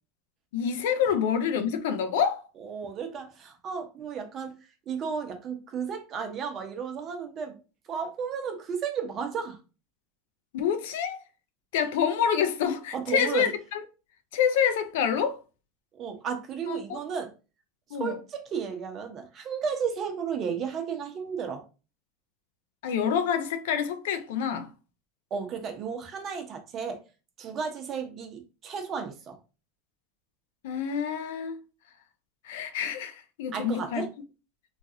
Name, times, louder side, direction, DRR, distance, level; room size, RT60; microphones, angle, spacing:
voice 1, 0.5-2.4 10.5-11.2 11.7-13.8 14.3-15.4 16.7-17.0 17.9-18.2 22.8-24.7 30.6-31.6 32.4-34.1, left 7 dB, 75° left, 0.5 m, -27 dB
voice 2, 2.6-4.5 4.9-7.5 7.9-9.6 12.9-13.5 16.0-17.3 18.0-21.6 25.3-27.0 27.4-29.4 33.5-34.1, right 6 dB, 40° right, 0.8 m, -33 dB
3.0 x 2.4 x 2.8 m
supercardioid pair, 110°, 0 cm